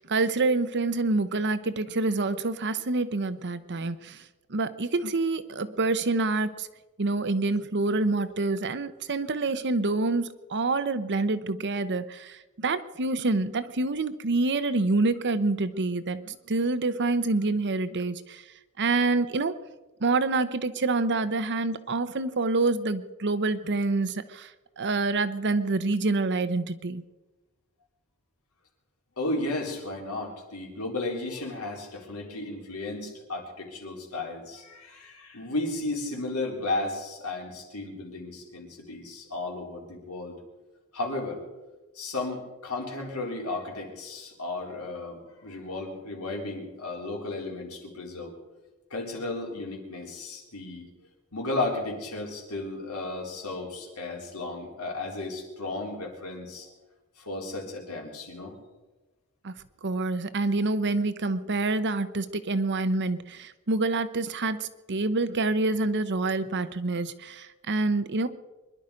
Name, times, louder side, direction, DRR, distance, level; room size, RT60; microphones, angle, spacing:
voice 1, 0.0-4.2 4.5-6.7 7.0-18.4 18.8-19.6 20.0-24.5 24.8-27.0 59.4-59.5 59.8-68.3, right 3 dB, 55° right, 13 dB, 0.9 m, -27 dB
voice 2, 29.2-40.4 40.9-41.4 41.9-48.3 48.9-50.9 51.3-56.7 57.2-58.6, left 2 dB, 90° left, -1 dB, 4.0 m, -34 dB
24.0 x 11.5 x 5.2 m, 1.1 s
head